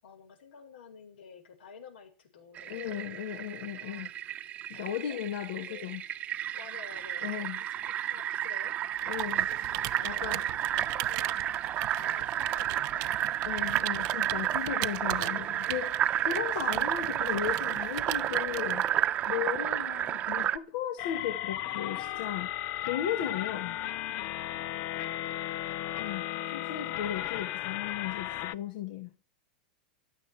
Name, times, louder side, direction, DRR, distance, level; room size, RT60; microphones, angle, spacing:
voice 1, 0.0-3.2 3.8-4.1 4.7-5.2 5.6-5.9 6.5-9.0 9.5-13.8, left 6 dB, 80° left, 7.1 m, -52 dB
Fill (with liquid), 2.6-20.6, right 11 dB, 25° right, 1.0 m, -31 dB
voice 2, 2.7-4.1 4.7-6.0 7.2-7.6 9.1-9.5 10.0-10.4 13.4-18.9 19.3-22.5 22.9-23.8 26.0-29.1, left 10 dB, 60° left, 2.4 m, -36 dB
Computer keyboard, 9.0-19.3, right 24 dB, 45° right, 0.7 m, -40 dB
sound 1, 21.0-28.5, left 13 dB, 45° left, 0.7 m, -35 dB
16.0 x 13.0 x 4.8 m
supercardioid pair, 150°, 5 cm